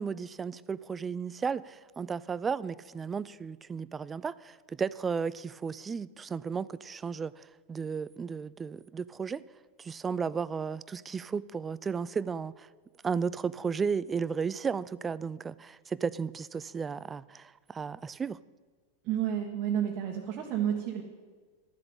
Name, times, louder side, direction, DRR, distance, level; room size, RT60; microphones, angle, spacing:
voice 1, 0.0-9.4 9.8-12.7 13.0-18.4, right 6 dB, 15° right, 20 dB, 0.3 m, -34 dB
voice 2, 19.0-21.0, right 9 dB, 35° right, 0 dB, 1.5 m, -30 dB
12.5 x 7.7 x 8.9 m, 1.5 s
figure-of-eight pair, 90°, 0 cm